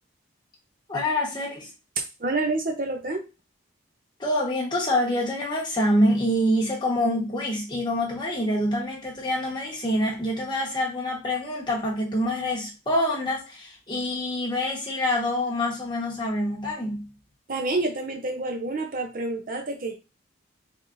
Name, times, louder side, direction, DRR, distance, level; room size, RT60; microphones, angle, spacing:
voice 1, 0.9-1.7 4.2-17.1, left 1 dB, 20° left, -3 dB, 1.2 m, -26 dB
voice 2, 2.2-3.2 17.5-20.0, right 2 dB, 45° right, 3 dB, 0.6 m, -28 dB
3.9 x 3.5 x 2.6 m, 0.29 s
head